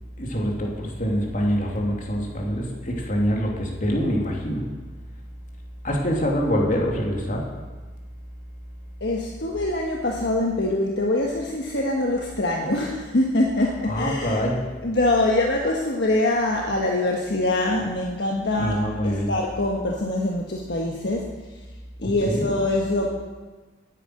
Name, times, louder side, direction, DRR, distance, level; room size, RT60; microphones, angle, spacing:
voice 1, 0.2-4.7 5.8-7.5 13.9-14.7 18.5-19.3 22.2-22.4, equal, 45° left, -1 dB, 2.7 m, -25 dB
voice 2, 9.0-14.4 14.8-21.3 22.0-23.2, left 1 dB, 65° left, 0 dB, 1.4 m, -24 dB
10.5 x 9.2 x 9.1 m, 1.3 s
head